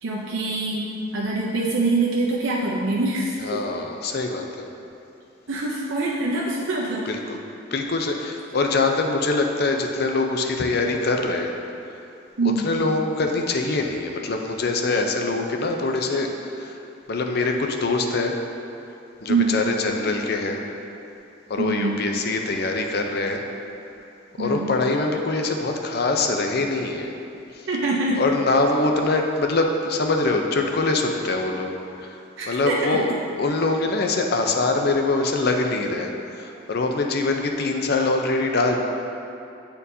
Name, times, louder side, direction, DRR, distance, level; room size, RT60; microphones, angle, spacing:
voice 1, 0.0-3.6 5.5-7.1 12.4-12.7 19.3-19.7 21.6-21.9 24.4-24.7 27.7-28.2 32.4-33.0, right 2 dB, 75° right, -4 dB, 0.6 m, -24 dB
voice 2, 3.4-4.5 7.1-7.4 7.7-11.5 12.6-16.8 17.1-18.3 19.2-20.6 21.5-23.4 24.4-27.1 28.2-31.7 32.0-32.1 32.5-33.1 33.4-38.8, left 3 dB, 50° left, 3 dB, 0.5 m, -23 dB
8.6 x 4.4 x 2.7 m, 2.8 s
head